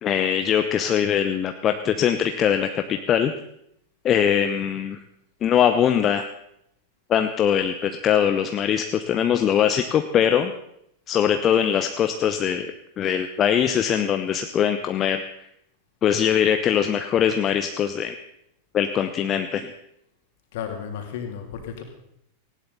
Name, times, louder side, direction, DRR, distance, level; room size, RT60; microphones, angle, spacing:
voice 1, 0.0-3.3 4.0-5.0 5.4-6.3 7.1-10.5 11.1-12.7 13.0-15.2 16.0-18.1 18.7-19.7, left 9 dB, 30° left, 7 dB, 0.8 m, -22 dB
voice 2, 20.5-21.8, left 8 dB, 55° left, 3 dB, 3.1 m, -33 dB
18.5 x 16.5 x 4.2 m, 0.77 s
figure-of-eight pair, 90°, 0 cm